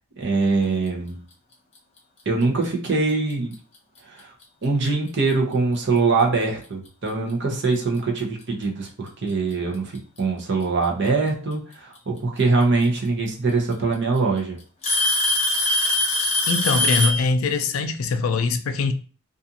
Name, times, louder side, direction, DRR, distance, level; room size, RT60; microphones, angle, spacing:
voice 1, 0.2-1.2 2.3-3.5 4.0-4.3 4.6-14.6, right 3 dB, 55° right, 0.7 m, -23 dB
Alarm / Tick-tock, 3.3-3.5 4.4-4.5 5.3-5.4 7.1-7.2 8.4-8.5 9.7-10.2 11.9-12.0 13.3-13.4 13.7-14.2 14.8-17.3, left 2 dB, 30° left, 0.8 m, -22 dB
voice 2, 16.5-18.9, left 4 dB, 70° left, 0.4 m, -22 dB
2.5 x 2.4 x 2.7 m
head